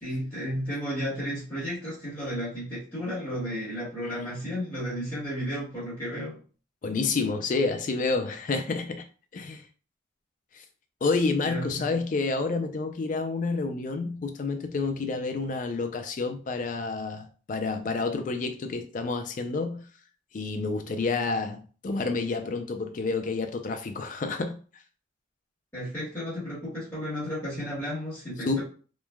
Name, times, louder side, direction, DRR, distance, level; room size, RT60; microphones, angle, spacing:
voice 1, 0.0-6.4 11.4-11.7 25.7-28.6, equal, 10° left, 1.2 m, -33 dB
voice 2, 6.8-9.1 9.3-9.6 10.5-10.6 11.0-19.9 20.3-24.6 28.5-28.6, left 3 dB, 45° left, 0.3 m, -29 dB
3.1 x 2.1 x 2.2 m
head